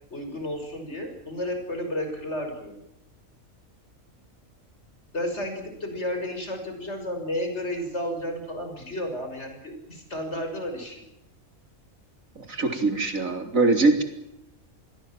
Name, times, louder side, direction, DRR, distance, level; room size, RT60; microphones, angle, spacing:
voice 1, 0.1-2.8 5.1-11.0, left 1 dB, 50° left, 6 dB, 6.4 m, -32 dB
voice 2, 12.4-14.0, right 3 dB, 70° right, 6 dB, 4.2 m, -22 dB
28.0 x 21.5 x 7.5 m, 0.87 s
omnidirectional pair, 1.4 m